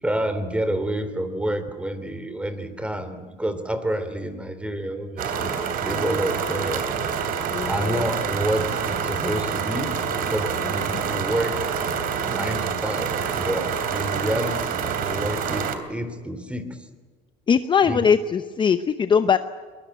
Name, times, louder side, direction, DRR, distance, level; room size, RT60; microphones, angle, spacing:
voice 1, 0.0-6.9 7.7-9.9 10.2-11.5 12.2-16.8 17.8-18.1, right 1 dB, 5° right, 10 dB, 2.9 m, -29 dB
sound 1, 5.2-15.8, right 6 dB, 60° right, 3.0 m, -27 dB
voice 2, 7.5-8.0 17.5-19.4, left 6 dB, 30° left, 10 dB, 0.8 m, -20 dB
23.0 x 21.0 x 9.2 m, 1.5 s
cardioid pair, 125°, 17 cm